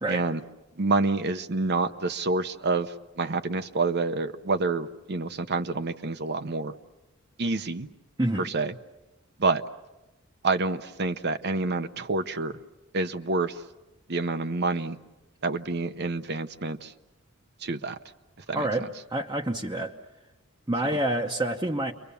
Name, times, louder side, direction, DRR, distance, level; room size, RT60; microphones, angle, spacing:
voice 1, 0.1-0.4 0.8-6.7 7.4-7.9 8.4-8.7 9.4-9.6 10.4-12.5 12.9-13.6 14.1-15.0 15.4-16.9 17.6-18.0, right 3 dB, 55° right, 9 dB, 0.8 m, -27 dB
voice 2, 8.2-8.5 18.5-19.9 20.7-21.9, right 1 dB, 20° right, -1 dB, 1.0 m, -28 dB
30.0 x 23.5 x 7.0 m, 1.0 s
head